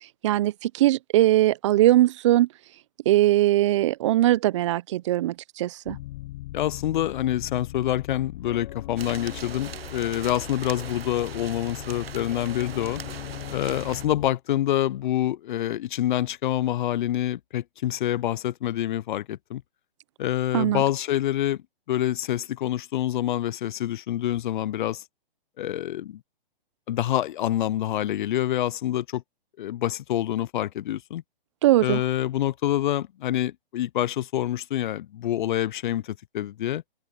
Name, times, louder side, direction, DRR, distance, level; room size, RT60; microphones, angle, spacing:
voice 1, 0.2-2.5 3.1-6.0 20.5-20.8 31.6-32.0, right 15 dB, 35° right, 0.4 m, -20 dB
sound 1, 5.9-14.3, left 16 dB, 35° left, 0.9 m, -39 dB
voice 2, 6.5-13.0 13.5-19.6 20.2-21.6 21.9-25.0 25.6-26.2 26.9-29.2 29.6-31.2 31.8-36.8, left 12 dB, 55° left, 0.5 m, -26 dB
sound 2, 9.0-14.1, right 8 dB, 85° right, 1.1 m, -41 dB
open air
hypercardioid pair, 145°, 29 cm